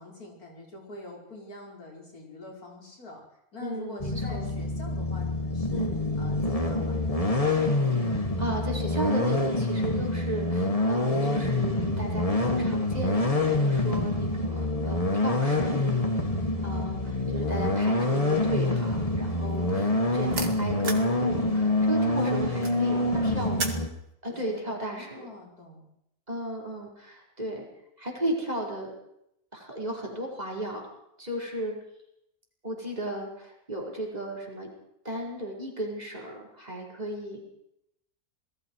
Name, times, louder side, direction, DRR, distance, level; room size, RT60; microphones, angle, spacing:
voice 1, 0.0-3.2 3.5-5.9 6.1-7.4 16.2-16.6 22.0-22.6 22.9-23.9 24.3-25.9, left 2 dB, 90° left, -1 dB, 6.0 m, -45 dB
voice 2, 3.6-4.5 5.7-6.0 7.9-15.9 16.6-23.8 24.2-25.3 26.3-27.7 28.0-28.9 29.5-30.9 31.2-31.8 32.6-34.7 35.0-37.4, right 1 dB, 25° right, -1 dB, 5.2 m, -35 dB
sound 1, 4.0-23.9, left 2 dB, 25° left, 2.1 m, -26 dB
sound 2, 17.5-17.9 18.2-21.2 21.5-23.9, right 4 dB, 85° right, 2.7 m, -36 dB
27.5 x 19.5 x 4.9 m, 0.78 s
omnidirectional pair, 1.5 m